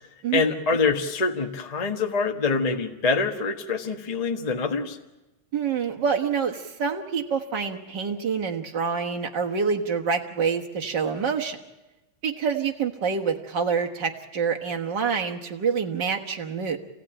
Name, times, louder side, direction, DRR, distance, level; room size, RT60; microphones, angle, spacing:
voice 1, 0.3-5.0, left 4 dB, 40° left, 3 dB, 0.5 m, -25 dB
voice 2, 5.5-11.6 12.2-16.8, right 6 dB, 45° right, 2 dB, 1.6 m, -27 dB
27.5 x 17.5 x 9.0 m, 1.1 s
omnidirectional pair, 3.4 m